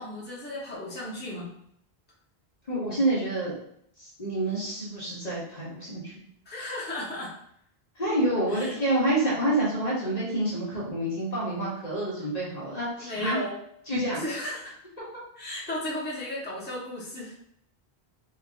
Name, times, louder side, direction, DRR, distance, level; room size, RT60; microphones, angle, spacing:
voice 1, 0.0-1.5 6.4-7.4 8.5-9.0 13.0-13.6 14.2-14.8 15.4-17.4, left 1 dB, 10° left, -6 dB, 1.0 m, -35 dB
voice 2, 2.7-3.6 4.0-6.1 8.0-13.4 13.9-14.2, right 1 dB, 40° left, -6 dB, 1.0 m, -28 dB
3.5 x 3.5 x 2.5 m, 0.71 s
omnidirectional pair, 1.1 m